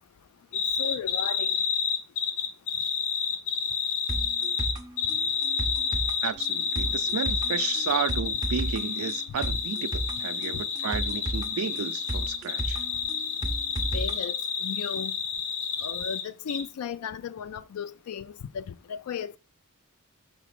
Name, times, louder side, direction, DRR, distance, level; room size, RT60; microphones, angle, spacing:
sound 1, 0.5-16.2 16.5-16.6, left 6 dB, 60° left, 1.2 m, -29 dB
voice 1, 0.8-1.6 10.5-10.6 13.9-15.1 15.8-19.4, left 7 dB, 80° left, 0.3 m, -35 dB
sound 2, 4.1-14.1 14.4-14.5, right 2 dB, 20° right, 0.7 m, -34 dB
voice 2, 6.2-12.8, right 7 dB, 75° right, 0.4 m, -33 dB
5.8 x 4.0 x 5.9 m
head